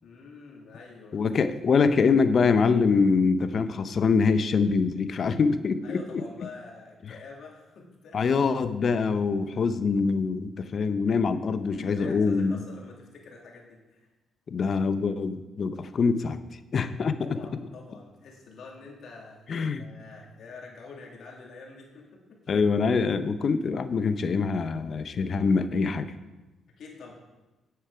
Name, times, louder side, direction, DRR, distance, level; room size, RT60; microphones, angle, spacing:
voice 1, 0.0-1.2 5.8-8.2 11.7-14.1 17.2-19.5 19.8-22.5 26.8-27.1, left 4 dB, 65° left, -1 dB, 2.6 m, -46 dB
voice 2, 1.1-6.0 8.1-12.6 14.5-16.4 16.7-17.2 19.5-19.8 22.5-26.1, left 5 dB, 50° left, 11 dB, 0.7 m, -24 dB
10.0 x 8.0 x 4.9 m, 1.1 s
cardioid pair, 90°, 0 cm